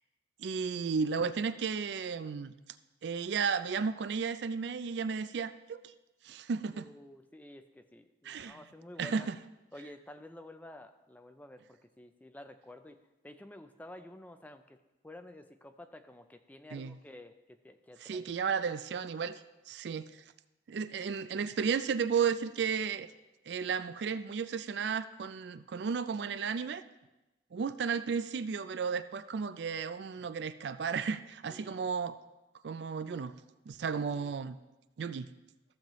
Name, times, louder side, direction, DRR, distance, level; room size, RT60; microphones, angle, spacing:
voice 1, 0.4-2.5 3.0-5.9 6.2-6.9 8.2-8.6 9.0-9.4 16.7-17.0 18.0-19.4 19.7-20.2 20.7-23.1 23.5-26.8 27.5-32.2 32.6-33.3 33.7-34.6 35.0-35.3, right 6 dB, 65° right, 13 dB, 0.4 m, -33 dB
voice 2, 6.7-9.3 9.7-13.0 13.2-14.8 15.0-18.3 31.5-31.8 33.9-34.4, left 1 dB, 10° left, 8 dB, 0.4 m, -51 dB
14.5 x 7.2 x 3.0 m, 1.0 s
head